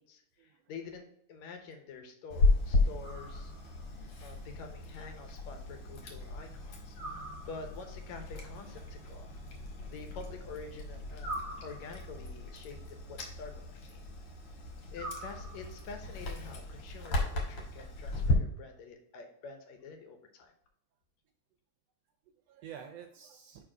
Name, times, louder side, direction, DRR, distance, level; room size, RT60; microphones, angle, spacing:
voice 1, 0.0-3.5 4.2-9.3 9.8-11.3 11.6-14.0 14.9-20.5, left 4 dB, 75° left, 5 dB, 2.1 m, -47 dB
Chewing mastication, 2.3-18.3, left 2 dB, 55° left, 2.1 m, -35 dB
sound 1, 3.0-3.9 6.9-8.0 11.2-12.3 14.9-15.9, right 1 dB, 25° left, 2.3 m, -43 dB
voice 2, 22.3-23.6, right 8 dB, 75° right, 6 dB, 1.5 m, -50 dB
5.0 x 4.7 x 4.8 m, 0.72 s
omnidirectional pair, 3.3 m